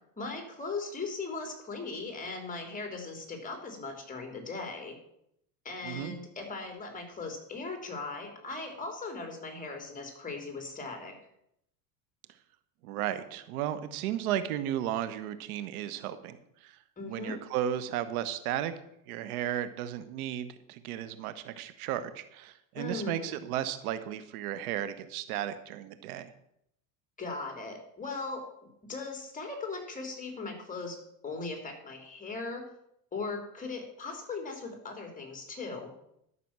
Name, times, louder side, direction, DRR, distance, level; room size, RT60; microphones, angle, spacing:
voice 1, 0.2-5.0 5.7-11.1 17.0-17.4 22.7-23.4 27.2-28.4 28.9-31.0 31.2-32.6 33.1-35.9, left 3 dB, 20° left, 4 dB, 3.5 m, -38 dB
voice 2, 5.8-6.1 12.8-16.7 17.1-18.7 19.1-26.3, right 11 dB, 85° right, 12 dB, 1.1 m, -34 dB
12.5 x 6.1 x 7.4 m, 0.76 s
supercardioid pair, 110°, 43 cm